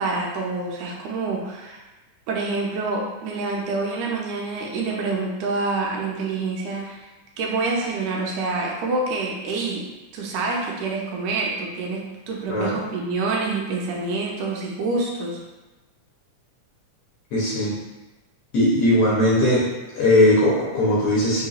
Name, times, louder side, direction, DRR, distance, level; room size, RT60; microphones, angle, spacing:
voice 1, 0.0-1.8 2.3-7.1 7.4-9.8 10.1-15.4, right 3 dB, 85° right, -2 dB, 2.1 m, -27 dB
voice 2, 12.5-12.8 17.3-17.7 18.5-19.7 19.9-21.5, left 1 dB, 65° left, -7 dB, 1.6 m, -19 dB
5.5 x 2.9 x 2.4 m, 1.1 s
omnidirectional pair, 3.5 m